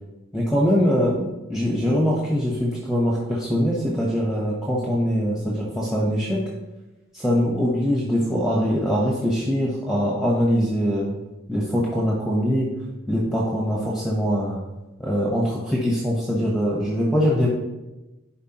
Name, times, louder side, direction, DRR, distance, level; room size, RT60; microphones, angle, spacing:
voice 1, 0.3-6.4 7.1-11.1 11.5-12.7 13.1-14.6 15.0-17.5, equal, ahead, -4 dB, 0.9 m, -22 dB
11.0 x 4.7 x 2.9 m, 1.0 s
head